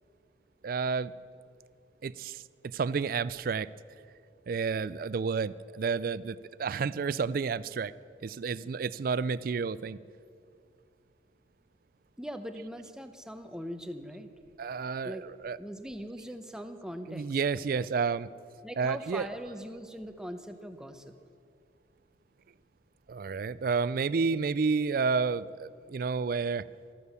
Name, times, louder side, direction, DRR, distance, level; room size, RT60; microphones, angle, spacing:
voice 1, 0.6-1.1 2.0-2.4 2.7-3.7 4.5-7.9 8.2-10.0 14.6-15.6 17.1-18.3 18.8-19.3 23.1-26.7, right 5 dB, 50° right, 18 dB, 0.4 m, -30 dB
voice 2, 12.2-14.3 15.0-15.2 15.6-17.9 18.6-21.1, equal, 5° right, 8 dB, 0.8 m, -41 dB
13.5 x 13.0 x 6.9 m, 2.3 s
head